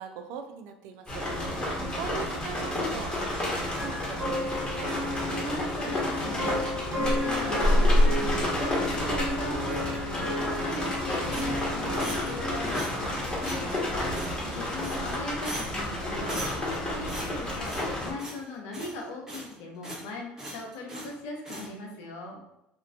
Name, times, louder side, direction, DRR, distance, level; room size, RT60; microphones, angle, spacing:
voice 1, 0.0-4.9 14.4-14.8, right 7 dB, 70° right, 6 dB, 0.3 m, -42 dB
sound 1, 1.1-18.1, left 1 dB, 20° left, 1.0 m, -29 dB
sound 2, 3.8-13.2, left 1 dB, 55° right, 1.3 m, -34 dB
voice 2, 5.3-10.3 10.6-22.4, left 2 dB, 75° left, 1 dB, 0.5 m, -40 dB
sound 3, 11.3-12.4 12.7-13.1 13.4-13.6 14.1-14.5 14.8-15.2 15.4-15.9 16.3-16.8 17.1-17.9 18.2-18.4 18.7-19.5 19.8-20.1 20.4-21.1 21.4-21.7, right 1 dB, 15° right, 0.7 m, -39 dB
2.4 x 2.1 x 2.4 m, 0.84 s
supercardioid pair, 80°, 5 cm